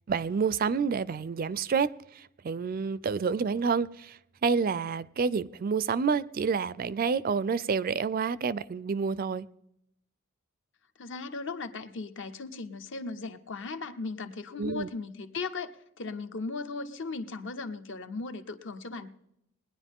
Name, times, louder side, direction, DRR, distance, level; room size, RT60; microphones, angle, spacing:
voice 1, 0.1-9.5 14.6-14.9, right 5 dB, 40° right, 0.4 m, -29 dB
voice 2, 11.0-15.7 16.0-19.1, left 3 dB, 60° left, 0.9 m, -37 dB
20.5 x 10.0 x 3.6 m
head